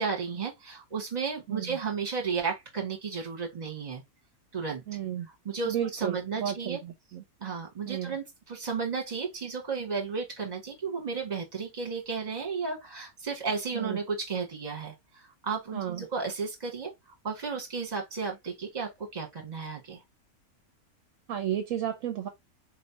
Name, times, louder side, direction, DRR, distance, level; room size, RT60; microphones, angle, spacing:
voice 1, 0.0-4.0 4.5-4.8 5.4-6.8 7.4-16.9 17.2-20.0, right 5 dB, 30° right, 1.5 m, -33 dB
voice 2, 4.9-5.3 5.7-7.2 7.9-8.2 13.7-14.0 15.7-16.0 21.3-22.3, right 10 dB, 65° right, 1.0 m, -33 dB
4.4 x 3.2 x 2.7 m
omnidirectional pair, 1.5 m